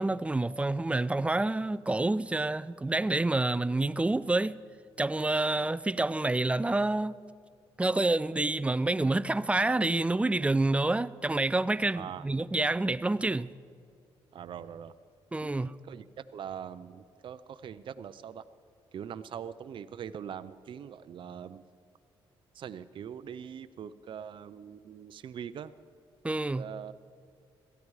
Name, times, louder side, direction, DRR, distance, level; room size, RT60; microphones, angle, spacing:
voice 1, 0.0-4.6 5.0-7.1 7.8-13.5 15.3-15.7 26.2-26.7, right 2 dB, 10° right, 0.4 m, -28 dB
voice 2, 11.9-12.2 14.3-14.9 15.4-18.5 18.9-21.6 22.5-25.7 26.6-26.9, right 8 dB, 60° right, 0.6 m, -42 dB
17.5 x 14.0 x 4.8 m
cardioid pair, 75°, 10 cm